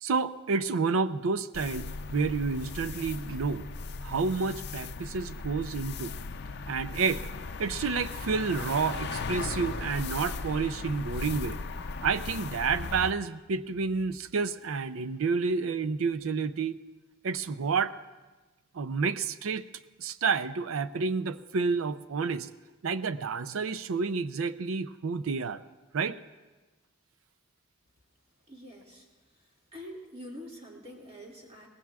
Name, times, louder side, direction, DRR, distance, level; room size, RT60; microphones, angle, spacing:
voice 1, 0.0-3.7 4.0-6.1 6.7-7.3 7.6-11.6 12.0-16.8 17.2-17.9 18.7-19.7 20.0-22.5 22.8-25.6 25.9-26.2, right 4 dB, 85° right, 14 dB, 0.5 m, -30 dB
sound 1, 1.5-13.1, left 4 dB, 55° left, 0.5 m, -37 dB
voice 2, 28.5-29.1 29.7-31.7, equal, 30° right, -2 dB, 2.3 m, -45 dB
23.0 x 19.0 x 2.4 m, 1.2 s
head